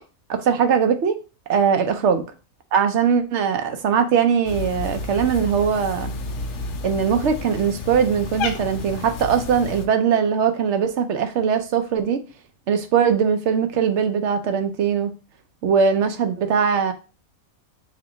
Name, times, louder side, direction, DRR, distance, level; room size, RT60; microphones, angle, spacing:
voice 1, 0.3-1.2 1.5-2.2 2.7-6.1 6.8-12.2 12.7-15.1 15.6-16.9, right 7 dB, 65° right, 0.8 m, -20 dB
Cat, 4.4-9.9, left 3 dB, 65° left, 0.9 m, -31 dB
3.6 x 2.8 x 3.8 m
omnidirectional pair, 1.5 m